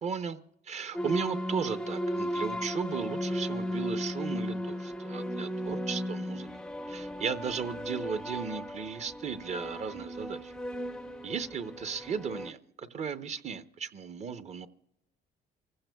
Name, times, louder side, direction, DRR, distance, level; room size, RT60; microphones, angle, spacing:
voice 1, 0.0-0.4 0.6-6.5 6.9-10.5 11.2-14.7, right 6 dB, 40° right, 0.7 m, -36 dB
sound 1, 0.9-12.5, equal, 5° left, 0.5 m, -36 dB
30.0 x 15.5 x 2.3 m
cardioid pair, 110°, 17 cm